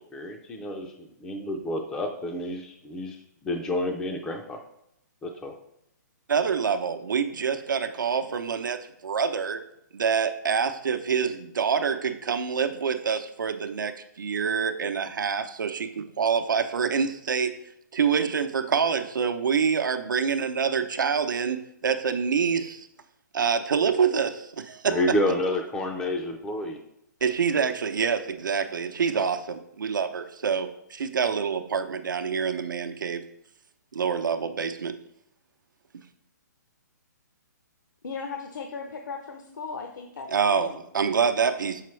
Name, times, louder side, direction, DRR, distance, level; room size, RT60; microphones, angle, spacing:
voice 1, 0.0-3.2 3.4-4.6 5.2-5.5 24.9-26.8, left 1 dB, 5° left, 2 dB, 0.4 m, -29 dB
voice 2, 6.3-9.6 9.9-17.5 17.9-22.9 23.3-25.1 27.2-33.2 33.9-34.9 40.3-41.8, right 6 dB, 90° right, 8 dB, 0.7 m, -26 dB
voice 3, 38.0-40.8, left 5 dB, 75° left, 4 dB, 0.8 m, -37 dB
6.8 x 5.7 x 3.2 m, 0.77 s
hypercardioid pair, 160°, 10 cm